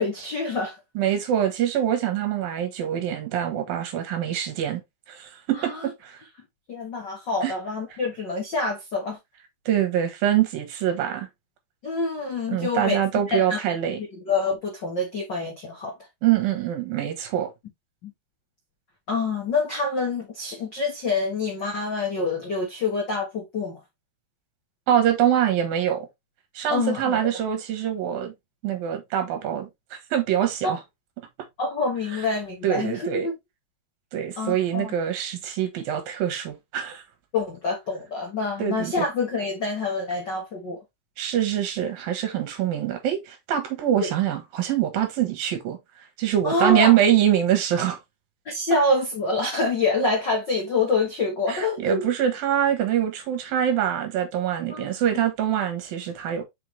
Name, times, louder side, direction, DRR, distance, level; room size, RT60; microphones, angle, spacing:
voice 1, 0.0-0.8 5.6-5.8 6.7-9.2 11.8-13.0 13.3-13.8 14.3-15.9 18.0-18.1 19.1-23.8 26.7-27.2 31.6-33.3 34.4-34.9 37.3-40.8 44.0-44.1 46.4-46.9 48.4-52.1 54.7-54.9, left 3 dB, 65° left, 1.1 m, -26 dB
voice 2, 1.0-4.8 5.1-6.2 7.4-7.5 9.7-11.3 12.5-14.0 16.2-17.5 24.9-26.1 26.5-28.3 28.6-30.8 31.2-31.3 32.1-32.3 32.6-33.3 34.1-37.0 38.6-39.1 41.2-45.8 46.2-48.0 51.5-56.4, right 10 dB, 75° right, 3.1 m, -24 dB
5.8 x 5.6 x 3.2 m
omnidirectional pair, 4.3 m